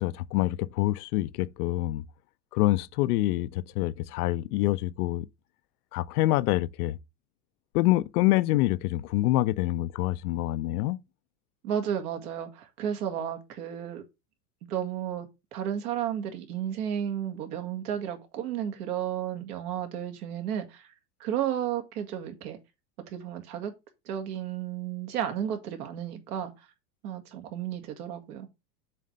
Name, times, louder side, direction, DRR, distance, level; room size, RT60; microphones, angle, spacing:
voice 1, 0.0-2.0 2.5-5.3 5.9-7.0 7.7-11.0, left 17 dB, 70° left, 0.6 m, -26 dB
voice 2, 11.6-14.0 14.6-20.9 21.2-22.6 23.1-23.7 24.1-26.7 27.0-28.5, right 9 dB, 75° right, 1.9 m, -33 dB
7.6 x 3.2 x 5.2 m
supercardioid pair, 110°, 47 cm